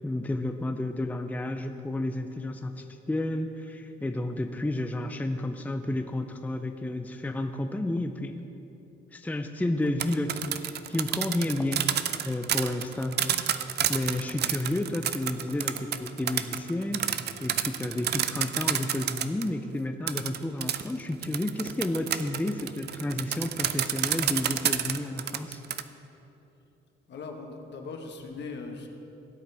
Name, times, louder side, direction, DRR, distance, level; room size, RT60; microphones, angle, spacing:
voice 1, 0.0-8.4 9.1-13.2 13.5-25.6, left 1 dB, 10° left, 6 dB, 0.5 m, -31 dB
sound 1, 9.8-19.5 20.1-25.8, right 10 dB, 55° right, 0.5 m, -29 dB
voice 2, 27.1-28.9, left 4 dB, 60° left, 3 dB, 1.3 m, -39 dB
17.0 x 8.2 x 3.4 m, 3.0 s
cardioid pair, 90°, 20 cm